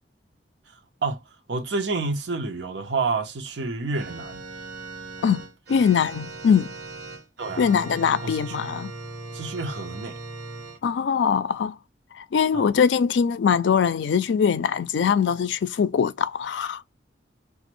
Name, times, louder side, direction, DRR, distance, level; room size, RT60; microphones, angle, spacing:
voice 1, 1.5-4.4 7.4-7.7 8.2-8.6 9.3-10.2 12.5-12.7, right 3 dB, 80° right, 0.7 m, -29 dB
Organ, 3.9-10.8, right 2 dB, 65° right, 1.4 m, -38 dB
voice 2, 5.7-6.7 7.6-8.9 10.8-11.8 12.2-16.8, left 7 dB, 85° left, 0.4 m, -22 dB
2.9 x 2.4 x 3.0 m
head